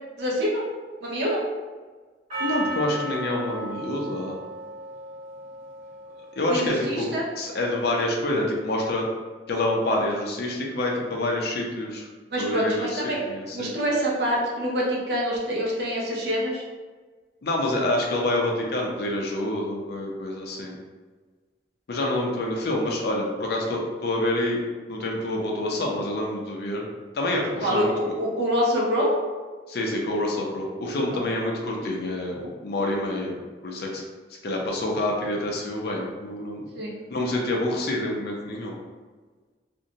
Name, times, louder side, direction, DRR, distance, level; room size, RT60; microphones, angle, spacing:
voice 1, 0.2-0.6 1.0-1.4 6.5-7.2 12.3-13.2 13.5-16.6 27.6-29.1 31.1-31.2 36.7-36.9, equal, 65° right, -3 dB, 0.7 m, -25 dB
Percussion, 2.3-6.8, right 2 dB, 40° right, 1.1 m, -35 dB
voice 2, 2.4-4.4 6.4-7.1 7.4-9.0 9.5-12.1 12.4-13.7 17.4-20.8 21.9-24.6 24.9-26.8 27.1-27.9 29.7-33.4 33.6-34.0 34.4-36.7 37.1-38.7, left 1 dB, 60° left, -1 dB, 0.5 m, -27 dB
2.5 x 2.1 x 2.8 m, 1.4 s
head